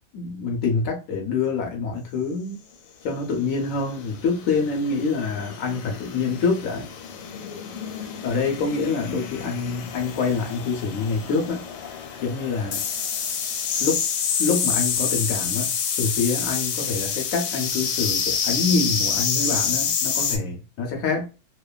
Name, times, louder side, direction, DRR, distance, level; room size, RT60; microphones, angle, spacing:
voice 1, 0.1-2.6 3.0-6.9 8.2-11.6 12.2-12.8 13.8-14.0 14.4-21.3, left 4 dB, 70° left, 0.8 m, -26 dB
sound 1, 3.6-20.4, left 7 dB, 90° left, 1.3 m, -28 dB
2.8 x 2.2 x 2.3 m
omnidirectional pair, 1.9 m